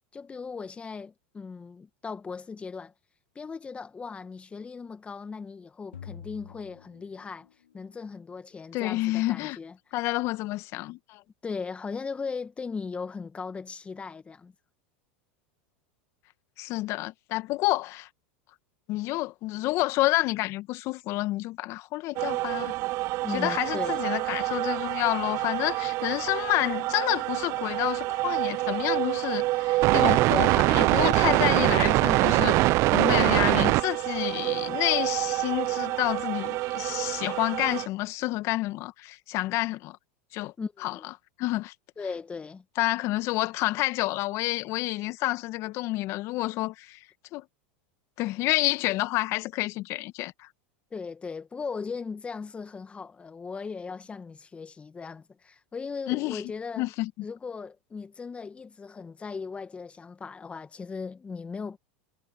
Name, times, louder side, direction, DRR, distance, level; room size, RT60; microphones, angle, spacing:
voice 1, 0.1-2.9 3.4-7.5 7.7-9.8 11.4-14.5 23.2-24.1 40.6-41.1 42.0-42.6 50.9-56.9 57.2-61.8, left 5 dB, 20° left, 1.9 m, -38 dB
sound 1, 5.9-7.7, left 8 dB, 90° left, 2.6 m, -46 dB
voice 2, 8.7-9.6 9.9-11.2 16.6-18.1 18.9-22.7 23.3-32.6 32.9-40.0 40.3-40.5 40.8-40.9 41.4-41.7 42.8-47.0 47.3-47.4 48.2-50.5 56.1-56.4 56.8-57.1, left 18 dB, 50° left, 1.6 m, -29 dB
sound 2, 22.2-37.9, right 19 dB, 50° right, 0.6 m, -25 dB
hypercardioid pair, 100°, 6 cm